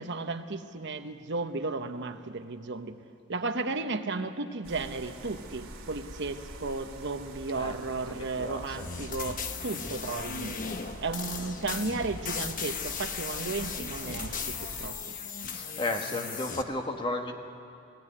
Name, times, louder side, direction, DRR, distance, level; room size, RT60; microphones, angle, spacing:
voice 1, 0.0-3.0 3.3-10.6 11.0-15.0, right 3 dB, 60° right, 8 dB, 1.0 m, -34 dB
sound 1, 4.6-14.9, right 1 dB, 85° right, 2.7 m, -46 dB
voice 2, 8.1-8.9 15.5-17.3, left 2 dB, 25° left, 4 dB, 1.5 m, -34 dB
sound 2, 8.7-16.6, left 6 dB, 40° left, 1.0 m, -37 dB
18.0 x 18.0 x 9.9 m, 2.5 s
head